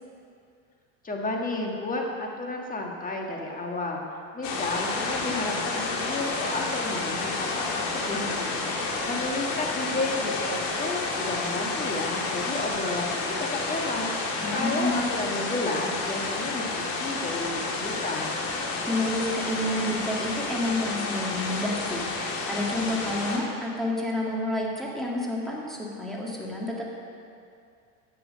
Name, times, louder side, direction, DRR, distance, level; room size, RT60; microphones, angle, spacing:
voice 1, 1.0-4.0 4.3-8.7 9.1-18.4, left 2 dB, 20° left, 0 dB, 1.5 m, -32 dB
sound 1, 4.4-23.4, left 3 dB, 60° left, 2.1 m, -30 dB
voice 2, 14.4-15.1 18.9-26.9, left 1 dB, ahead, -4 dB, 2.0 m, -29 dB
13.0 x 7.7 x 5.2 m, 2.4 s
supercardioid pair, 130°, 39 cm